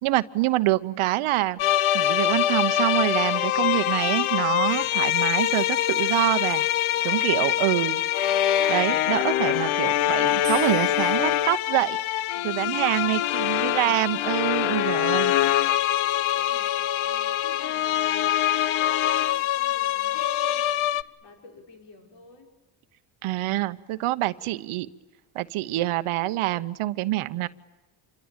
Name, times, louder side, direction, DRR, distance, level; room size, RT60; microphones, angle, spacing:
voice 1, 0.0-1.6 1.9-6.6 7.0-8.0 8.7-12.0 12.4-15.3 23.2-24.9 25.3-27.5, right 16 dB, 85° right, 12 dB, 0.9 m, -26 dB
sound 1, 1.6-21.0, left 12 dB, 75° left, 0.9 m, -24 dB
voice 2, 6.9-7.8 12.3-22.5, left 3 dB, 60° left, 2 dB, 4.6 m, -50 dB
sound 2, 10.4-13.7, right 7 dB, 45° right, 1.5 m, -44 dB
27.5 x 23.5 x 8.9 m, 1.1 s
cardioid pair, 120°, 49 cm